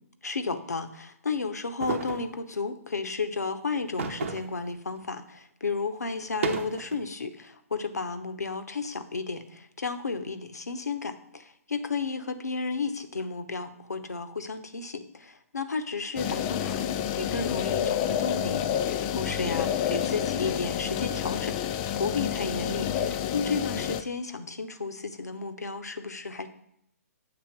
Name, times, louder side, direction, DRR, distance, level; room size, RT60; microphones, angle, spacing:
voice 1, 0.2-21.6 22.0-26.5, left 4 dB, 80° left, 10 dB, 0.8 m, -33 dB
sound 1, 1.8-2.3 4.0-4.6 5.0-5.1 6.2-7.0, right 6 dB, 55° right, 0.9 m, -32 dB
sound 2, 16.2-24.0, left 9 dB, 25° left, 0.4 m, -29 dB
7.8 x 3.8 x 5.8 m, 0.76 s
figure-of-eight pair, 130°, 9 cm